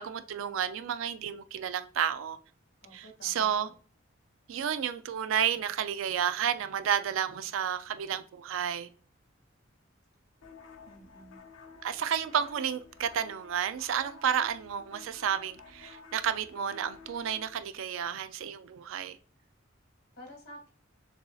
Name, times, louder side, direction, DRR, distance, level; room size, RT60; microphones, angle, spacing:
voice 1, 0.0-2.4 2.9-3.7 4.5-8.9 11.8-19.2, right 8 dB, 75° right, 0.4 m, -31 dB
voice 2, 2.8-3.7 10.8-11.4 20.1-20.7, equal, 50° left, 1.7 m, -51 dB
sound 1, 10.4-17.6, left 4 dB, 80° left, 0.7 m, -52 dB
6.8 x 2.7 x 2.3 m
head